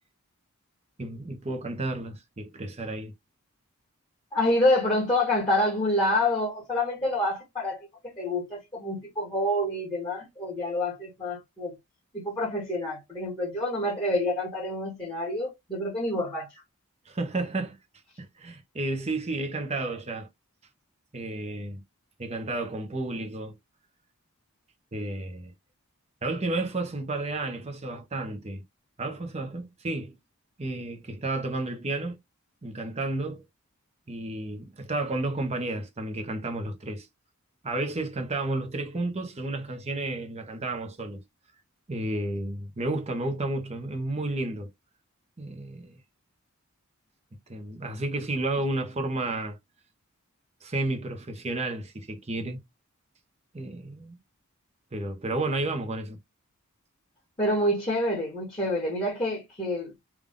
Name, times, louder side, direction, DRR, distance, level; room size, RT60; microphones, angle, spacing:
voice 1, 1.0-3.1 17.1-17.8 18.2-20.3 21.1-21.8 22.2-23.6 24.9-25.5 26.2-28.6 29.0-30.1 30.6-32.2 32.6-33.4 34.1-37.1 37.6-41.2 41.9-44.7 45.4-46.0 47.5-49.6 50.6-52.6 53.5-54.2 54.9-56.2, right 2 dB, 30° right, 0.7 m, -32 dB
voice 2, 4.3-11.7 12.1-16.5 57.4-59.9, left 1 dB, 20° left, 1.6 m, -27 dB
3.5 x 2.4 x 3.6 m
head